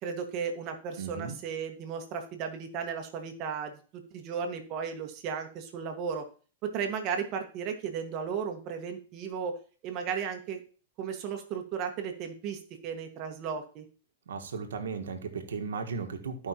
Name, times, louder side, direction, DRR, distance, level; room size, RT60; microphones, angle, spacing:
voice 1, 0.0-6.2 6.6-9.6 9.8-10.6 11.0-13.8, right 6 dB, 40° right, 4 dB, 1.6 m, -35 dB
voice 2, 1.0-1.4 14.3-16.5, right 5 dB, 90° right, 5 dB, 1.4 m, -36 dB
14.0 x 5.5 x 2.9 m, 0.39 s
hypercardioid pair, 140°, 0 cm